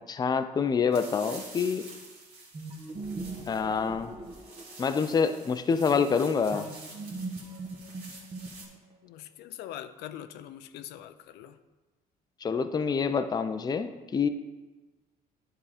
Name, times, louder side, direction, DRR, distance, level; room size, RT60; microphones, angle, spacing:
voice 1, 0.1-1.8 3.5-4.2 4.8-6.7 12.4-14.3, left 6 dB, 25° left, 9 dB, 0.5 m, -27 dB
sound 1, 0.9-8.6, right 3 dB, 70° right, 2.2 m, -48 dB
sound 2, 2.5-5.1 6.5-9.0, right 3 dB, 35° right, 1.1 m, -40 dB
voice 2, 9.0-11.6, left 11 dB, 80° left, 11 dB, 0.5 m, -43 dB
10.5 x 3.7 x 4.9 m, 1.2 s
cardioid pair, 110°, 17 cm